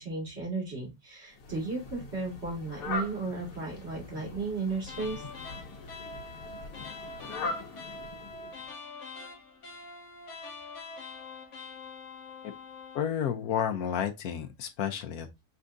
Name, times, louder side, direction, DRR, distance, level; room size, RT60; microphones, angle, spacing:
voice 1, 0.0-5.2, right 3 dB, 40° right, 2.4 m, -34 dB
Fowl, 1.3-8.7, left 3 dB, 90° left, 1.8 m, -41 dB
sound 1, 4.9-13.1, left 3 dB, 50° left, 1.4 m, -44 dB
voice 2, 12.9-15.4, left 9 dB, 75° left, 1.2 m, -31 dB
5.6 x 3.6 x 2.6 m
omnidirectional pair, 1.7 m